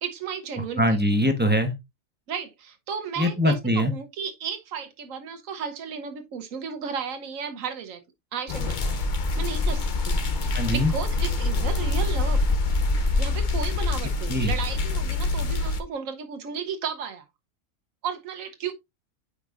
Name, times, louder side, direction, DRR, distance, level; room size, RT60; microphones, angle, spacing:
voice 1, 0.0-1.0 2.3-8.0 8.3-9.0 9.4-12.4 13.2-17.2 18.0-18.7, right 6 dB, 80° right, 1.3 m, -34 dB
voice 2, 0.8-1.7 3.2-3.9 10.5-10.9 14.3-14.5, equal, 10° right, 0.9 m, -22 dB
sound 1, 8.5-15.8, left 3 dB, 45° left, 0.8 m, -25 dB
8.6 x 5.2 x 2.5 m
omnidirectional pair, 1.4 m